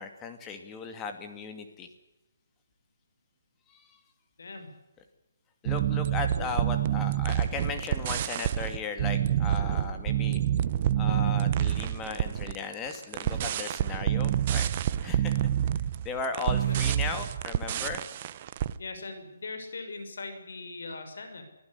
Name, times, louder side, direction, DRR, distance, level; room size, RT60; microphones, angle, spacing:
voice 1, 0.0-1.9 3.7-4.0 5.6-10.4 11.0-14.7 15.0-15.4 16.0-18.0, left 4 dB, 15° left, 6 dB, 2.4 m, -36 dB
voice 2, 4.4-4.7 6.3-6.6 9.8-10.0 16.7-16.8 18.8-21.4, left 3 dB, 75° left, 7 dB, 6.0 m, -40 dB
sound 1, 5.7-18.7, right 11 dB, 30° right, 0.9 m, -28 dB
25.0 x 15.0 x 9.7 m, 0.94 s
hypercardioid pair, 165°, 0 cm